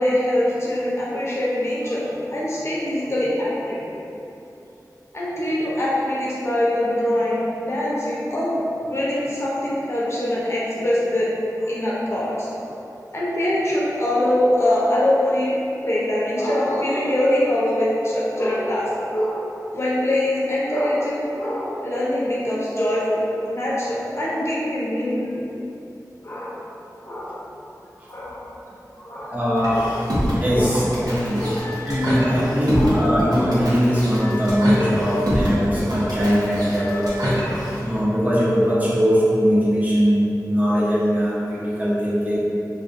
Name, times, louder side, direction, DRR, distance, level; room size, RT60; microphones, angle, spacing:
voice 1, 0.0-3.8 5.1-8.6 8.9-11.3 11.6-12.7 13.1-15.5 15.8-25.4 26.2-26.7 27.0-27.4 28.1-28.5 29.0-29.4 29.7-29.9 30.5-30.8 31.4-31.7 32.7-33.1, left 1 dB, 40° left, -6 dB, 0.7 m, -23 dB
voice 2, 29.3-30.0 30.4-31.5 31.8-37.5 37.8-42.4, equal, 25° right, -9 dB, 0.9 m, -20 dB
sound 1, 29.6-37.8, equal, 65° right, 0.9 m, -25 dB
3.5 x 2.5 x 2.6 m, 2.9 s
wide cardioid pair, 55°, 7 cm